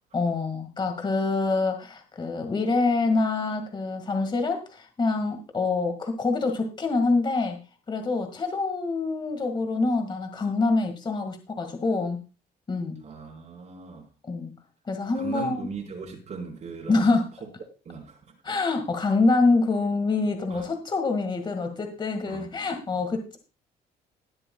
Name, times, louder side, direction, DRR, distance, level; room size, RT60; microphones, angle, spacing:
voice 1, 0.1-7.6 7.9-12.2 12.7-13.0 14.3-14.5 14.9-15.7 16.9-17.3 18.4-23.4, left 3 dB, 25° left, 5 dB, 1.9 m, -25 dB
voice 2, 13.0-14.1 15.1-17.2 17.8-18.2 18.5-18.6 20.5-20.6 22.3-22.4, right 5 dB, 45° right, -1 dB, 4.1 m, -38 dB
21.0 x 7.8 x 2.3 m, 0.32 s
cardioid pair, 110°, 17 cm